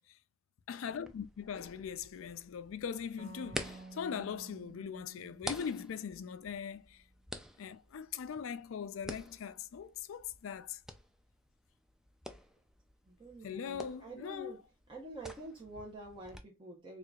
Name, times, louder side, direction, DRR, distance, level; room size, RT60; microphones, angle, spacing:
voice 1, 0.7-7.0 7.6-10.8 13.4-14.5, left 7 dB, 75° left, 0.4 m, -41 dB
sound 1, 0.9-16.4, equal, 5° right, 0.3 m, -49 dB
sound 2, 3.2-6.7, right 3 dB, 60° right, 0.5 m, -53 dB
voice 2, 13.1-14.6 14.9-17.0, right 2 dB, 25° right, 0.9 m, -47 dB
4.6 x 2.5 x 2.3 m
head